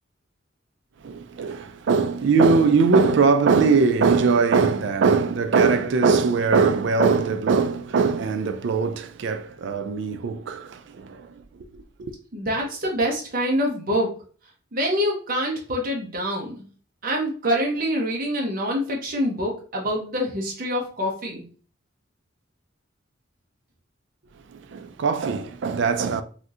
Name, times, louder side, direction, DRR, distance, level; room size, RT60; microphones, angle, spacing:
voice 1, 1.0-11.3 12.0-12.1 24.5-26.2, right 4 dB, 65° right, 0.3 m, -21 dB
voice 2, 12.3-14.1 14.7-16.6 17.0-21.5, equal, 45° right, 0.7 m, -25 dB
3.5 x 2.7 x 2.4 m
head